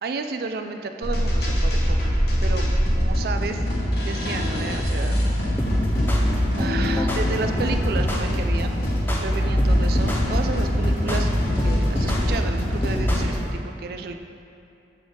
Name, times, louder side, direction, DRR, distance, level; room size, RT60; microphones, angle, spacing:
voice 1, 0.0-2.0 2.4-2.6 2.9-3.6 4.0-5.2 6.5-8.8 9.1-14.1, right 4 dB, 55° right, 6 dB, 0.3 m, -32 dB
sound 1, 1.0-13.3, equal, 60° left, 0.8 m, -23 dB
sound 2, 5.6-13.6, left 1 dB, 10° left, 0.4 m, -28 dB
7.5 x 3.4 x 3.8 m, 2.6 s
head